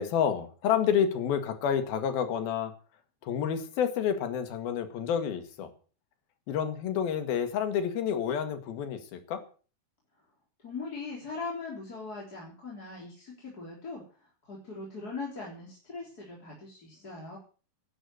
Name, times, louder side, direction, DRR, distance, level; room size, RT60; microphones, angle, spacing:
voice 1, 0.0-2.7 3.2-5.7 6.5-9.4, left 8 dB, 80° left, 9 dB, 3.7 m, -29 dB
voice 2, 10.6-14.0 14.4-17.4, left 4 dB, 25° left, -3 dB, 3.8 m, -40 dB
12.5 x 10.0 x 7.9 m, 0.39 s
omnidirectional pair, 4.2 m